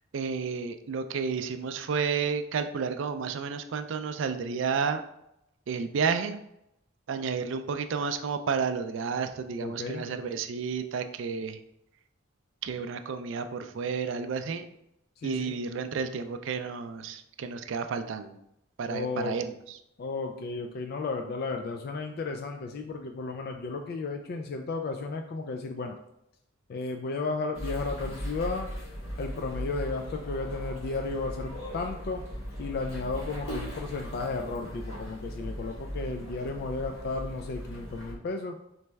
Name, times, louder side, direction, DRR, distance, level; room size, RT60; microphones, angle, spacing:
voice 1, 0.1-5.0 5.7-6.4 7.1-11.6 12.6-14.7 15.2-18.4 18.8-19.8, right 5 dB, 65° right, 8 dB, 0.4 m, -31 dB
voice 2, 9.6-10.1 15.2-15.6 18.9-19.4 20.0-26.0 26.7-28.7 29.2-32.2 32.6-38.6, left 3 dB, 50° left, 4 dB, 0.3 m, -34 dB
sound 1, 27.5-38.1, equal, 75° left, 1.2 m, -38 dB
4.0 x 3.2 x 3.4 m, 0.82 s
head